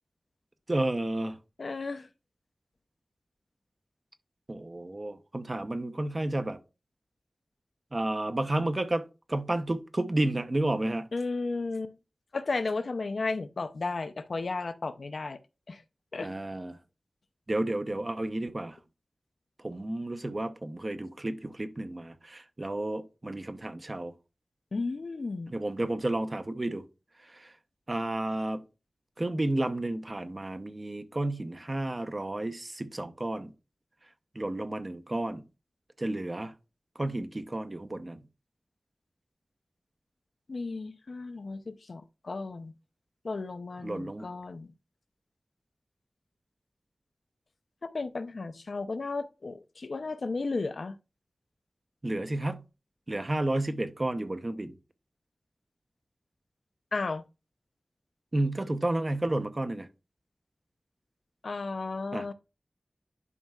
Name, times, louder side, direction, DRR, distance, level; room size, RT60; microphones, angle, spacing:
voice 1, 0.7-1.4 4.5-6.6 7.9-11.1 16.2-16.8 17.5-18.8 19.6-24.1 25.5-26.8 27.3-27.5 27.9-28.6 29.2-33.5 34.3-35.4 36.0-36.5 37.0-38.2 43.8-44.3 52.0-52.6 53.1-54.8 58.3-59.9 62.1-62.3, right 1 dB, 35° right, 0.8 m, -31 dB
voice 2, 1.6-2.1 11.1-11.9 12.3-15.4 15.7-15.8 16.1-16.3 24.7-25.5 40.5-42.7 43.2-44.7 47.8-51.0 56.9-57.2 61.4-62.3, left 3 dB, 75° left, 0.6 m, -34 dB
11.0 x 5.4 x 2.4 m
wide cardioid pair, 85°, 0 cm